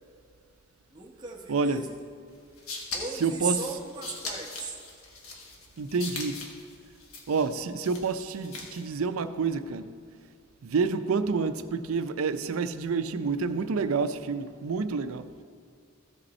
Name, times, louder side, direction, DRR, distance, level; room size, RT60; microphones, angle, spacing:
voice 1, 0.9-2.0 2.9-4.8, right 4 dB, 20° right, 1.0 m, -36 dB
voice 2, 1.5-1.8 3.2-3.6 5.8-6.4 7.3-9.9 10.6-15.4, right 4 dB, 80° right, 0.5 m, -28 dB
sound 1, 2.3-8.9, left 3 dB, 85° left, 1.4 m, -41 dB
14.5 x 5.3 x 4.2 m
head